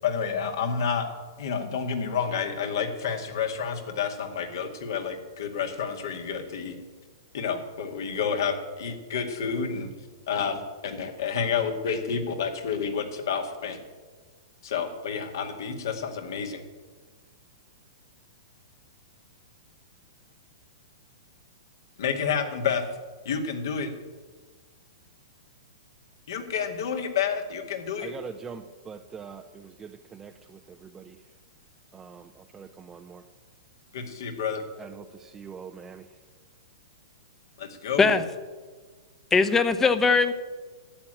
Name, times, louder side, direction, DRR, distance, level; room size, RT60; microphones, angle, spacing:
voice 1, 0.0-1.1 1.4-6.8 7.3-9.9 10.3-13.8 14.6-16.6 22.0-22.8 23.3-23.9 26.3-28.1 33.9-34.6 37.6-38.1, left 6 dB, 60° left, 5 dB, 2.1 m, -29 dB
voice 2, 28.0-31.3 31.9-33.3 34.8-36.2, right 6 dB, 15° right, 5 dB, 0.7 m, -43 dB
voice 3, 39.3-40.3, left 4 dB, 15° left, 11 dB, 1.0 m, -20 dB
11.5 x 8.9 x 9.0 m, 1.4 s
figure-of-eight pair, 110°, 2 cm